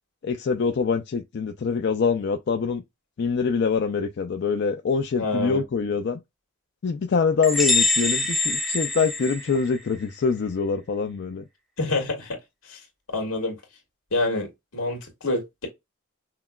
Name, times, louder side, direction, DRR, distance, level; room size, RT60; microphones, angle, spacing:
voice 1, 0.2-2.8 3.2-6.2 6.8-11.4, left 5 dB, 50° left, 0.4 m, -24 dB
voice 2, 5.2-5.6 11.8-12.4 12.7-12.8 13.1-13.6 14.1-14.5 14.7-15.7, left 2 dB, 80° left, 1.7 m, -27 dB
sound 1, 7.4-10.0, left 3 dB, ahead, 0.6 m, -24 dB
5.7 x 2.0 x 2.3 m
head